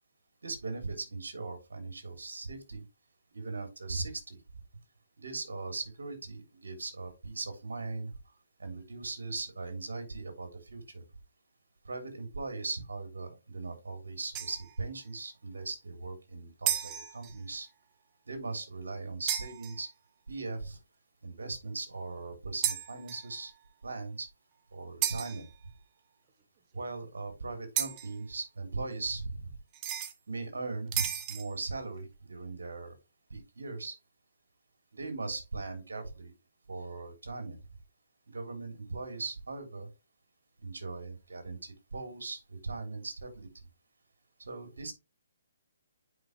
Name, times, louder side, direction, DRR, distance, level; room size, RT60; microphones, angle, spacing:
voice 1, 0.4-2.8 3.3-4.4 5.2-8.1 8.6-11.0 11.9-17.7 18.3-19.9 20.3-20.8 21.2-23.5 23.8-24.3 24.7-25.5 26.7-29.5 30.3-33.0 33.3-34.0 34.9-36.3 36.7-37.6 38.3-39.9 40.6-43.7 44.4-44.9, right 3 dB, 70° right, 6 dB, 3.3 m, -39 dB
sound 1, 14.3-14.7 16.7-17.4 19.3-19.8 22.6-23.3 25.0-25.5 27.8-28.1 29.7-30.1 30.9-31.6, right 10 dB, 30° right, 1.1 m, -33 dB
9.4 x 5.2 x 3.2 m, 0.27 s
figure-of-eight pair, 135°, 0 cm